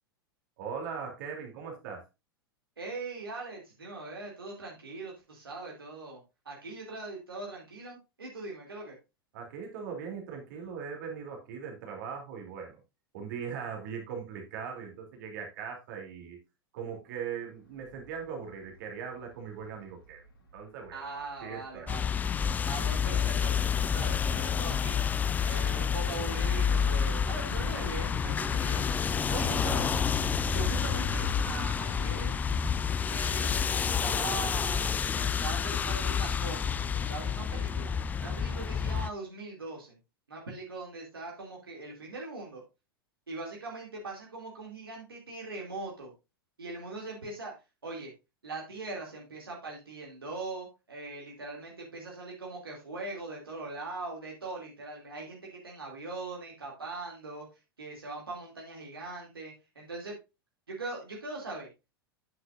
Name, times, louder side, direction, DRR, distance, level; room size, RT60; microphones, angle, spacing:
voice 1, 0.6-2.0 9.3-12.8 13.1-16.4 16.7-20.2 20.5-21.9, right 6 dB, 50° right, 1 dB, 2.9 m, -40 dB
voice 2, 2.8-8.9 20.9-22.1 22.6-25.0 25.4-29.9 30.5-32.4 33.0-37.9 38.2-40.0 40.3-42.6 43.3-46.1 46.6-47.5 47.8-48.1 48.4-57.5 57.8-60.2 60.7-61.7, right 3 dB, 75° right, -2 dB, 2.6 m, -41 dB
Bus, 17.6-34.7, right 1 dB, 70° left, 3.2 m, -46 dB
sound 1, 21.9-39.1, left 7 dB, 15° left, 0.3 m, -29 dB
9.4 x 8.4 x 2.5 m, 0.26 s
figure-of-eight pair, 90°, 12 cm